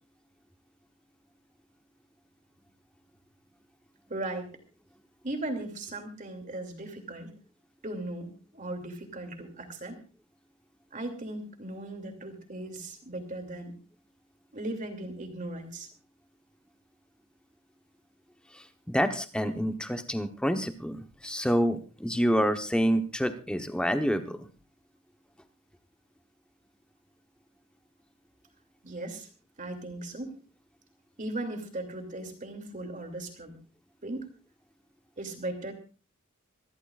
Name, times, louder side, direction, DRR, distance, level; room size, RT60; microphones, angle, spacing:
voice 1, 4.1-4.6 5.2-7.3 7.8-10.0 10.9-13.7 14.5-15.9 28.8-29.3 29.6-30.3 31.2-33.6 34.0-34.3 35.2-35.7, right 2 dB, 35° right, 5 dB, 2.8 m, -37 dB
voice 2, 18.9-24.5, equal, 5° left, 7 dB, 1.0 m, -27 dB
26.5 x 13.0 x 2.5 m, 0.34 s
head